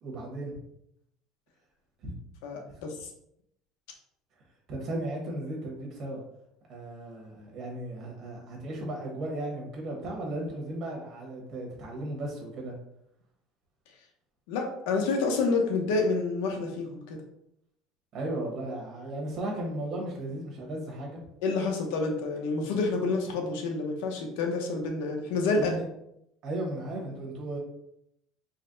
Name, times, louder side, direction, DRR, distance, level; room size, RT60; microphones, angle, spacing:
voice 1, 0.0-0.6 2.0-2.1 2.7-2.8 4.7-6.2 6.7-12.7 18.1-21.2 25.6-25.8 26.4-27.6, right 1 dB, 40° right, -1 dB, 1.1 m, -35 dB
voice 2, 2.4-3.1 14.5-17.2 21.4-25.8, left 3 dB, 85° left, 2 dB, 0.8 m, -28 dB
4.0 x 2.2 x 3.8 m, 0.77 s
cardioid pair, 175°, 0 cm